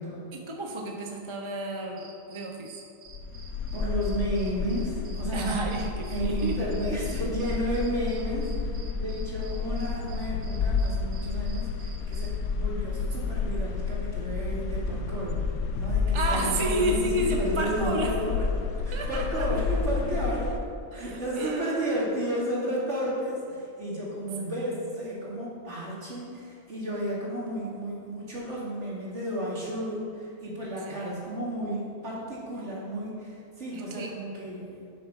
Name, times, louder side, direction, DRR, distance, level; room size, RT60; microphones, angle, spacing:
voice 1, 0.3-2.8 5.3-6.6 16.1-18.2 18.9-19.5 20.9-22.1 30.8-31.1 33.7-34.1, right 1 dB, 30° right, 2 dB, 0.6 m, -31 dB
sound 1, 1.8-12.5, right 4 dB, 85° right, 1.7 m, -51 dB
sound 2, 3.1-20.6, left 4 dB, 70° left, 1.1 m, -30 dB
voice 2, 3.7-5.5 6.1-8.5 8.9-15.4 15.7-18.4 18.8-20.6 20.9-34.7, equal, 50° right, -5 dB, 2.7 m, -32 dB
11.5 x 6.6 x 5.4 m, 2.4 s
omnidirectional pair, 1.6 m